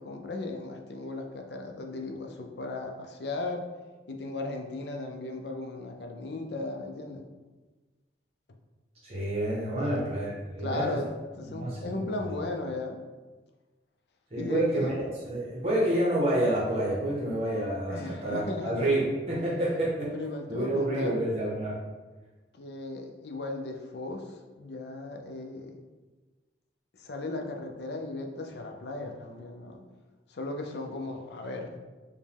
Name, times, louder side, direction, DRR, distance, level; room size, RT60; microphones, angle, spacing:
voice 1, 0.0-3.7 4.1-7.3 9.8-10.0 10.6-11.1 11.3-13.0 14.3-15.0 17.9-19.0 20.1-21.2 22.5-25.7 27.0-29.8 30.3-31.8, left 2 dB, 65° left, 3 dB, 0.5 m, -36 dB
voice 2, 9.0-10.9 11.5-11.8 14.3-20.1 20.5-21.8, right 1 dB, 30° right, -5 dB, 0.8 m, -28 dB
5.0 x 2.2 x 3.4 m, 1.2 s
head